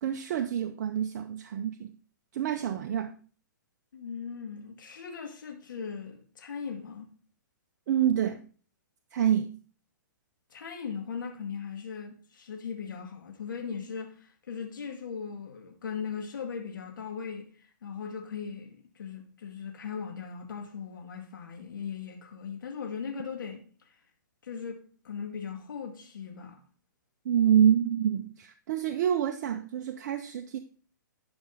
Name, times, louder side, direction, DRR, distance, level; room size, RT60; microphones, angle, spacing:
voice 1, 0.0-1.9 2.3-3.1 7.9-8.4 9.1-9.5 27.2-30.6, right 9 dB, 50° right, 0.6 m, -27 dB
voice 2, 3.9-7.1 10.5-23.9 24.4-26.6, left 6 dB, 75° left, 2.0 m, -39 dB
11.5 x 5.3 x 3.8 m
hypercardioid pair, 135°, 11 cm